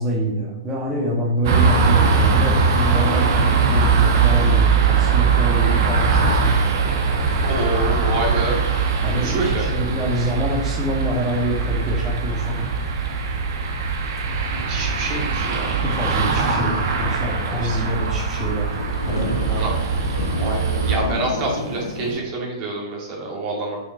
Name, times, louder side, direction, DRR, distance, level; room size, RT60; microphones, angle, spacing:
voice 1, 0.0-6.6 7.2-7.3 7.8-7.9 9.0-12.7 15.8-18.7 19.0-19.3, equal, 20° right, -4 dB, 2.2 m, -26 dB
sound 1, 1.4-21.0, right 5 dB, 55° right, 1.5 m, -20 dB
sound 2, 3.5-3.6 3.9-4.3 4.9-5.1 5.7-5.8 6.5-6.6 6.9-7.0 7.2-7.3 8.4-8.7 9.1-9.2 10.0-10.1 10.7-11.1 11.5-11.6 12.2-12.9 13.9-14.2 14.5-14.6 14.9-15.0 15.2-15.3 15.9-16.0 16.4-16.5 17.1-22.2, left 2 dB, 90° left, 2.6 m, -31 dB
voice 2, 7.3-8.6 9.0-9.7 14.5-15.7 17.6-17.8 19.4-19.8 20.3-23.8, right 2 dB, 40° right, -1 dB, 2.4 m, -27 dB
6.4 x 6.3 x 4.6 m, 0.95 s
hypercardioid pair, 120°, 2 cm